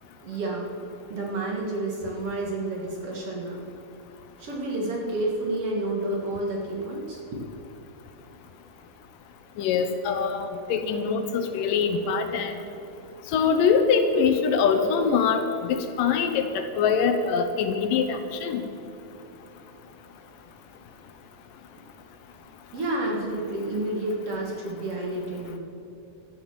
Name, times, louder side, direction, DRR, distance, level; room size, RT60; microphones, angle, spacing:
voice 1, 0.2-0.7 1.1-3.6 4.4-7.4 22.7-25.6, right 2 dB, 50° right, -1 dB, 2.2 m, -30 dB
voice 2, 9.6-12.5 13.3-18.6, left 6 dB, 75° left, 7 dB, 2.5 m, -23 dB
13.0 x 9.1 x 7.3 m, 2.9 s
omnidirectional pair, 4.0 m